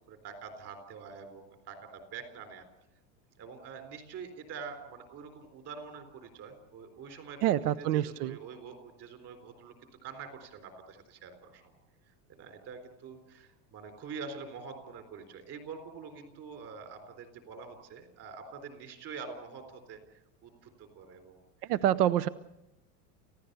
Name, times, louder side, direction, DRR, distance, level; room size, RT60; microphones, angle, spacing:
voice 1, 0.1-2.7 3.4-7.4 7.8-11.7 12.3-21.7, right 5 dB, 30° right, 7 dB, 3.9 m, -46 dB
voice 2, 7.4-8.4 21.7-22.3, right 12 dB, 65° right, 15 dB, 0.9 m, -26 dB
29.5 x 16.0 x 6.8 m, 0.89 s
supercardioid pair, 175°, 48 cm